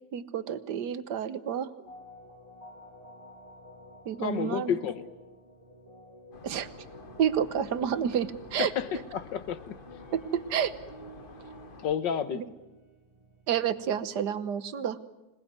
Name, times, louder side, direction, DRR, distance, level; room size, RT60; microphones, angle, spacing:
voice 1, 0.1-1.7 4.0-4.8 6.4-6.7 7.2-8.7 10.1-10.7 12.3-12.4 13.5-15.0, right 8 dB, 60° right, 13 dB, 1.6 m, -29 dB
sound 1, 1.9-14.0, equal, 15° right, 2.1 m, -51 dB
voice 2, 4.2-5.0 8.6-9.7 11.8-12.4, left 8 dB, 70° left, 12 dB, 1.8 m, -30 dB
sound 2, 6.3-12.0, left 4 dB, 35° left, 1.1 m, -50 dB
26.0 x 19.0 x 9.5 m, 1.0 s
omnidirectional pair, 2.1 m